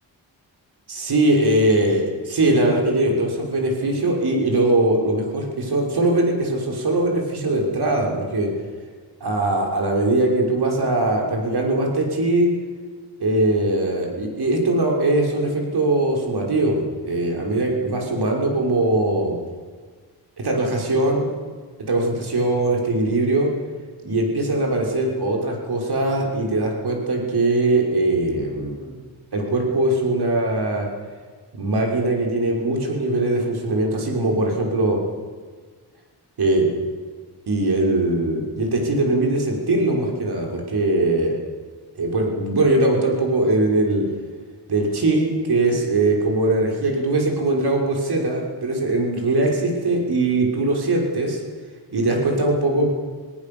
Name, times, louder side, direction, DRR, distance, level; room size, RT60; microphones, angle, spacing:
voice 1, 0.9-8.5 9.2-12.5 13.2-16.8 17.0-19.4 20.4-21.3 21.9-23.5 24.0-29.0 29.3-30.9 31.5-35.0 36.4-36.7 37.5-41.4 41.9-44.0 44.7-51.4 51.9-52.9, right 2 dB, 65° right, 0 dB, 6.2 m, -21 dB
28.0 x 18.0 x 7.2 m, 1.5 s
cardioid pair, 75°, 41 cm